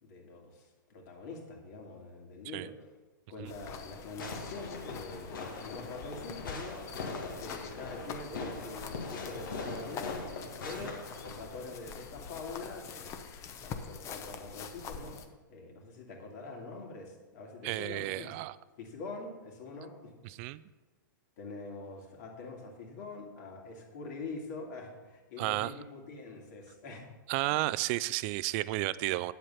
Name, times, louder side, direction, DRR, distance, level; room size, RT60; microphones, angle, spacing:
voice 1, 0.0-2.7 3.3-13.2 13.6-15.2 15.5-18.3 18.8-20.1 21.4-27.1 27.5-27.6, left 3 dB, 55° left, 0 dB, 2.6 m, -44 dB
sound 1, 3.5-15.3, left 6 dB, 25° left, 0.8 m, -45 dB
Fireworks, 4.2-11.6, left 4 dB, 75° left, 2.1 m, -41 dB
voice 2, 17.6-18.6 20.2-20.6 25.4-25.7 27.3-29.3, right 18 dB, 35° right, 17 dB, 0.4 m, -32 dB
9.6 x 7.6 x 5.7 m, 1.2 s
hypercardioid pair, 135°, 11 cm